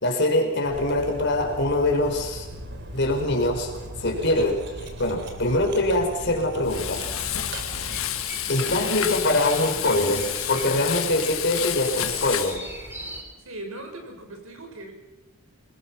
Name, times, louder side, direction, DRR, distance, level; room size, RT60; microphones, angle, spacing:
voice 1, 0.0-2.5 2.9-3.7 4.0-4.6 5.0-7.0 8.5-12.6, left 1 dB, 55° left, 4 dB, 4.7 m, -23 dB
Cutlery silverware, 0.6-8.4, right 1 dB, 55° right, 3.5 m, -38 dB
Frying (food), 6.6-12.6, left 11 dB, 75° left, 1.5 m, -30 dB
sound 1, 7.7-13.2, equal, 10° right, 4.1 m, -39 dB
voice 2, 13.4-14.9, right 2 dB, 75° right, 4 dB, 6.2 m, -39 dB
27.5 x 20.5 x 6.0 m, 1.0 s
head